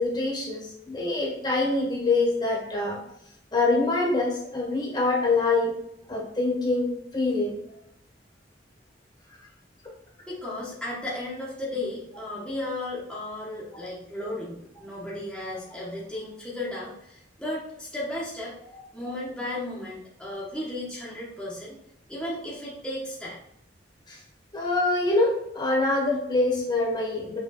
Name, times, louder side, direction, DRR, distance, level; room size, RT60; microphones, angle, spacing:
voice 1, 0.0-3.0 3.5-5.7 6.1-7.6 18.7-19.1 24.1-24.2 24.5-27.4, left 2 dB, 25° left, -2 dB, 1.6 m, -25 dB
voice 2, 10.3-18.5 18.9-21.8 22.1-23.4, left 1 dB, 5° left, -8 dB, 1.4 m, -34 dB
6.2 x 3.6 x 4.2 m, 0.76 s
head